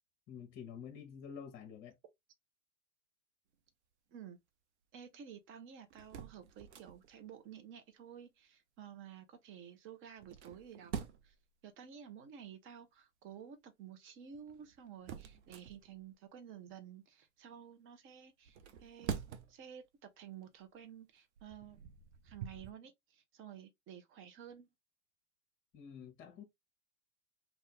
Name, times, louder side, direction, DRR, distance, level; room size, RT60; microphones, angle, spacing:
voice 1, 0.3-1.9 25.7-26.4, left 7 dB, 35° left, 0.9 m, -49 dB
voice 2, 4.9-11.3 11.6-19.2 19.5-21.8 22.2-24.7, right 8 dB, 35° right, 0.9 m, -52 dB
sound 1, 5.9-7.2 10.1-11.4 14.3-16.1 18.4-19.7 20.2-20.4 21.2-22.7, right 7 dB, 65° right, 0.8 m, -46 dB
2.7 x 2.4 x 3.5 m
hypercardioid pair, 100°, 36 cm